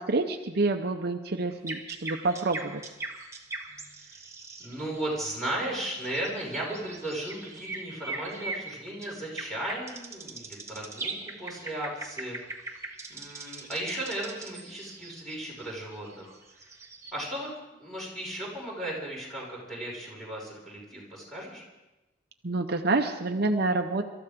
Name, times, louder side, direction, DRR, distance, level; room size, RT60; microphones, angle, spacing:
voice 1, 0.0-2.8 22.4-24.0, right 3 dB, 60° right, 5 dB, 0.8 m, -27 dB
sound 1, 1.5-17.1, right 3 dB, 15° right, 1.4 m, -41 dB
voice 2, 4.6-16.4 17.1-17.5 17.8-21.6, right 1 dB, ahead, -5 dB, 5.5 m, -36 dB
25.5 x 13.5 x 3.7 m, 1.0 s
head